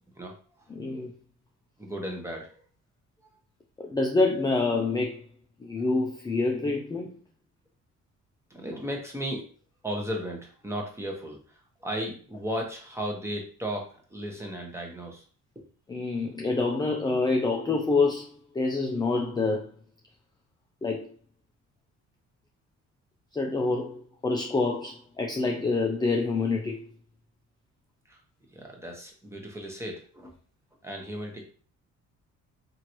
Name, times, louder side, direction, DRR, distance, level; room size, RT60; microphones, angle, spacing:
voice 1, 0.7-1.1 3.8-5.2 5.6-7.1 15.9-19.7 20.8-21.1 23.3-26.8, left 3 dB, 15° left, 0.4 m, -27 dB
voice 2, 1.8-2.6 8.5-9.5 9.8-15.2 28.1-28.2 28.5-30.3 30.8-31.4, equal, 10° right, 0.9 m, -35 dB
3.0 x 2.6 x 3.0 m
cardioid pair, 90°, 30 cm